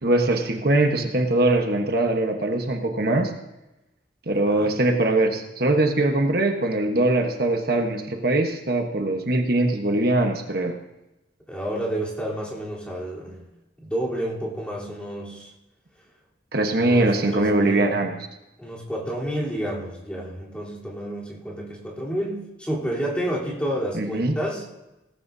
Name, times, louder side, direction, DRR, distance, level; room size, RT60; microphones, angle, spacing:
voice 1, 0.0-3.3 4.3-10.8 16.5-18.2 23.9-24.4, right 2 dB, 55° right, 4 dB, 1.2 m, -22 dB
voice 2, 4.3-4.7 11.5-13.4 13.8-15.5 16.7-18.0 18.6-24.7, right 1 dB, 5° left, -6 dB, 3.5 m, -30 dB
17.5 x 14.5 x 2.7 m, 0.97 s
head